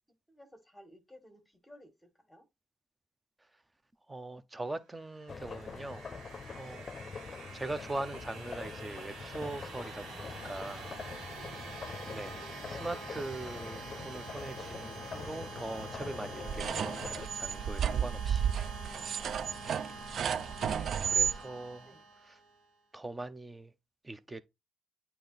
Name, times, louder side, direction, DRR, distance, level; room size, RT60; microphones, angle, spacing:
voice 1, 0.3-2.5 11.1-11.3 18.8-19.5 21.0-22.1, equal, 5° left, 1.7 m, -57 dB
voice 2, 4.1-6.1 6.5-6.8 7.5-10.9 12.1-18.5 20.7-21.9 22.9-23.7 24.0-24.4, right 2 dB, 15° right, 0.7 m, -41 dB
sound 1, 5.0-22.6, right 3 dB, 85° right, 1.7 m, -46 dB
sound 2, 5.3-17.3, left 5 dB, 35° left, 0.6 m, -44 dB
sound 3, 16.5-21.4, right 8 dB, 60° right, 0.3 m, -32 dB
8.7 x 2.9 x 4.0 m
cardioid pair, 90°, 0 cm